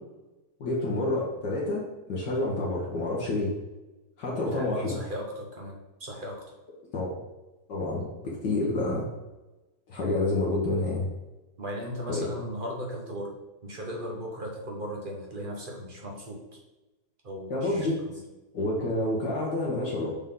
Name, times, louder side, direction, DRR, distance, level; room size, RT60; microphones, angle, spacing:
voice 1, 0.6-1.8 2.1-3.5 4.2-5.0 6.9-7.2 7.7-9.0 9.9-11.1 12.1-12.3 17.5-18.0 18.5-20.1, left 2 dB, 60° left, -4 dB, 1.5 m, -28 dB
voice 2, 4.3-6.4 11.6-13.4 13.6-16.6 17.2-18.2, equal, 40° right, -1 dB, 0.8 m, -37 dB
6.7 x 3.9 x 3.7 m, 1.1 s
omnidirectional pair, 2.3 m